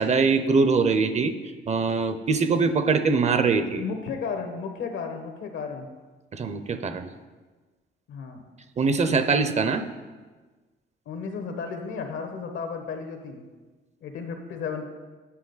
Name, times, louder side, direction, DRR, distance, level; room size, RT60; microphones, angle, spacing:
voice 1, 0.0-1.3 1.7-3.8 6.3-7.1 8.8-9.8, right 4 dB, 35° right, 10 dB, 0.5 m, -22 dB
voice 2, 3.7-5.9 8.1-8.4 11.1-13.4 14.0-14.9, left 5 dB, 80° left, 5 dB, 1.0 m, -33 dB
8.4 x 5.1 x 4.0 m, 1.3 s
cardioid pair, 90°, 20 cm